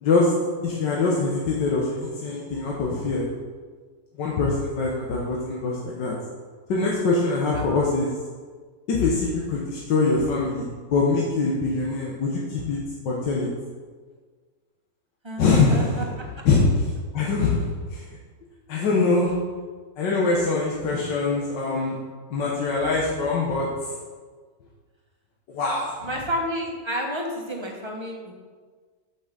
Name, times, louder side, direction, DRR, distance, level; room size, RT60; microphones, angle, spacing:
voice 1, 0.0-0.3 0.6-3.3 4.2-6.1 6.7-8.1 8.9-12.8 13.1-13.5 15.4-16.0 16.5-16.7 17.1-18.1 18.7-19.3 20.0-22.0 22.3-23.9 25.5-26.0, left 3 dB, 80° left, -3 dB, 1.7 m, -23 dB
voice 2, 7.5-7.9 15.2-16.0 26.0-28.3, equal, 20° right, -1 dB, 1.1 m, -31 dB
6.3 x 5.8 x 6.8 m, 1.5 s
omnidirectional pair, 1.9 m